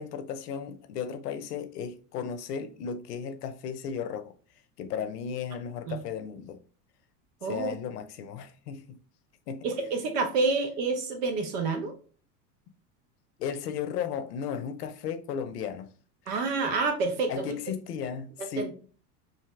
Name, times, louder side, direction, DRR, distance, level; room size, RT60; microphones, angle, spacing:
voice 1, 0.0-4.3 4.8-6.6 7.5-9.0 9.5-9.6 13.4-15.9 17.3-18.7, left 7 dB, 85° left, 0.6 m, -35 dB
voice 2, 7.4-7.7 9.6-11.9 16.3-17.5 18.4-18.7, right 3 dB, 75° right, 1.0 m, -28 dB
3.2 x 2.6 x 2.4 m
hypercardioid pair, 85°, 47 cm